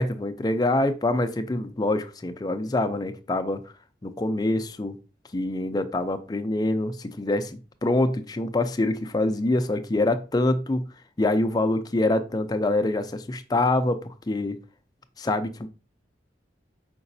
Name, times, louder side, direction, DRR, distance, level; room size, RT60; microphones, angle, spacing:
voice 1, 0.0-3.7 4.0-5.0 5.3-10.8 11.2-14.6 15.2-15.7, left 2 dB, 20° left, 0.4 m, -25 dB
5.1 x 3.9 x 2.6 m
head